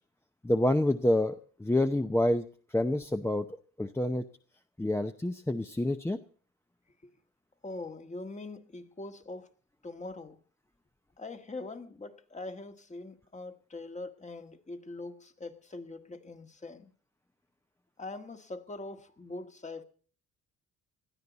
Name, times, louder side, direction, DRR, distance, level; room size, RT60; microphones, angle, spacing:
voice 1, 0.4-2.4 2.7-3.5 3.8-4.2 4.8-6.2, left 1 dB, 10° left, 0.8 m, -27 dB
voice 2, 7.6-9.5 9.8-10.4 11.2-16.9 18.0-19.8, left 2 dB, 25° left, 1.6 m, -42 dB
21.0 x 13.0 x 4.1 m
cardioid pair, 90°, 30 cm